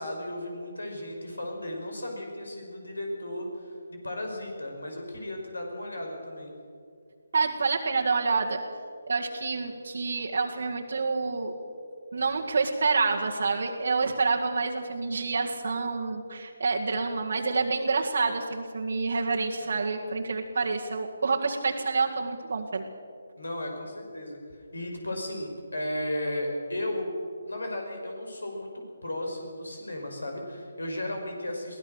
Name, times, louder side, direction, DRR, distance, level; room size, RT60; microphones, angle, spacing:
voice 1, 0.0-6.5 23.4-27.1 27.5-31.8, left 1 dB, 85° left, 3 dB, 5.6 m, -35 dB
voice 2, 7.3-8.6 9.1-11.5 12.1-22.9, right 4 dB, 65° right, -1 dB, 2.0 m, -28 dB
23.0 x 17.0 x 6.6 m, 2.3 s
figure-of-eight pair, 150°, 0 cm